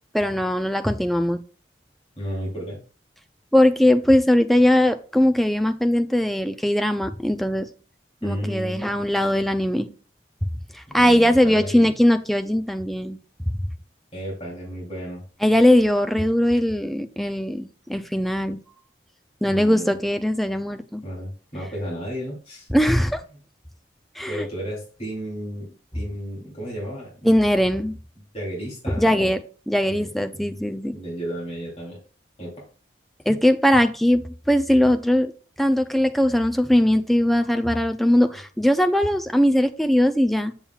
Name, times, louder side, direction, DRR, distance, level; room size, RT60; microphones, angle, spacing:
voice 1, 0.1-1.4 3.5-7.7 8.2-9.9 10.7-13.2 15.4-18.6 19.4-21.0 22.7-23.2 24.2-24.5 27.2-28.0 28.9-29.4 29.7-31.0 33.3-35.3 35.6-40.5, left 1 dB, ahead, 7 dB, 0.4 m, -20 dB
voice 2, 2.2-2.8 8.2-9.0 10.9-11.9 14.1-15.2 19.4-19.9 21.0-22.7 24.3-25.7 25.9-27.3 28.3-29.3 29.8-30.5 30.9-32.0 32.4-32.5, equal, 35° left, -5 dB, 3.1 m, -33 dB
7.1 x 7.1 x 2.4 m, 0.39 s
head